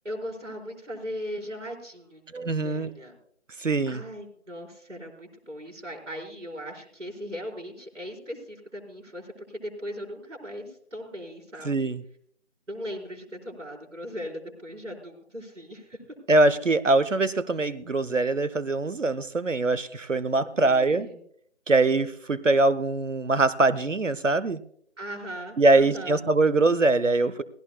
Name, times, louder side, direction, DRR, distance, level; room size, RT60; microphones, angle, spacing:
voice 1, 0.0-2.2 2.6-3.2 3.9-11.9 12.7-16.0 20.4-21.2 25.0-26.2, equal, 75° right, 0 dB, 4.5 m, -38 dB
voice 2, 2.3-2.9 3.6-4.0 11.6-12.0 16.3-21.1 21.7-24.6 25.6-27.4, right 2 dB, 90° right, 14 dB, 0.9 m, -23 dB
18.5 x 16.0 x 2.3 m, 0.63 s
figure-of-eight pair, 170°, 37 cm